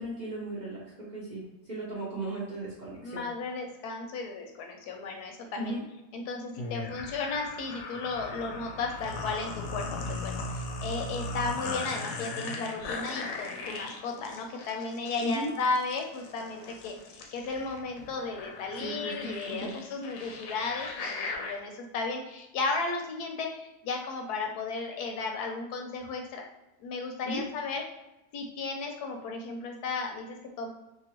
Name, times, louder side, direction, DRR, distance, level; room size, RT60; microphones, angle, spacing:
voice 1, 0.0-3.2 5.6-5.8 15.2-15.5 18.7-19.7 20.2-20.3 27.3-27.4, right 1 dB, 50° right, -7 dB, 0.5 m, -36 dB
voice 2, 3.0-5.8 6.1-26.4 26.8-27.8 28.3-30.7, left 3 dB, 90° left, 3 dB, 1.1 m, -34 dB
sound 1, 6.6-21.5, left 3 dB, 70° left, 0.9 m, -38 dB
2.8 x 2.5 x 2.9 m, 0.91 s
omnidirectional pair, 1.6 m